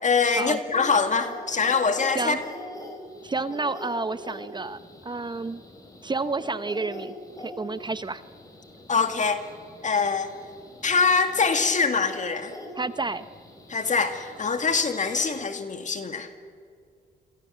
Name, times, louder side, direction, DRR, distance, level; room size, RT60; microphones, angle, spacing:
voice 1, 0.0-2.4 8.9-9.4 9.8-10.3 10.8-12.5 13.7-16.3, left 5 dB, 40° left, 7 dB, 2.0 m, -24 dB
sound 1, 0.7-15.5, left 1 dB, 15° left, 4.9 m, -43 dB
voice 2, 3.2-5.6 6.0-8.2 12.7-13.2, right 3 dB, 20° right, 13 dB, 0.8 m, -30 dB
28.0 x 24.0 x 7.4 m, 2.2 s
cardioid pair, 90°, 20 cm